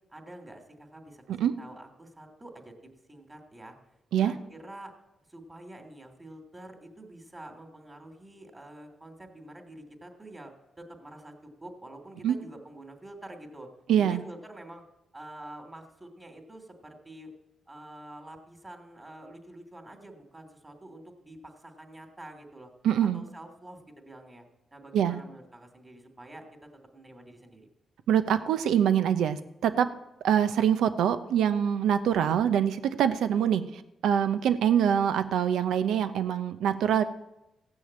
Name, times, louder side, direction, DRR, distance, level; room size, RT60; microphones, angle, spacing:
voice 1, 0.1-1.2 1.6-2.7 3.1-3.7 4.2-4.9 5.3-13.7 14.0-14.8 15.1-17.3 17.7-22.7 23.1-24.4 24.7-26.5 26.9-27.7, right 1 dB, 20° right, 4 dB, 3.0 m, -47 dB
voice 2, 13.9-14.2 22.8-23.2 24.9-25.2 28.1-29.9 30.2-37.0, right 9 dB, 85° right, 11 dB, 0.7 m, -24 dB
15.5 x 6.4 x 8.7 m, 0.90 s
cardioid pair, 65°, 0 cm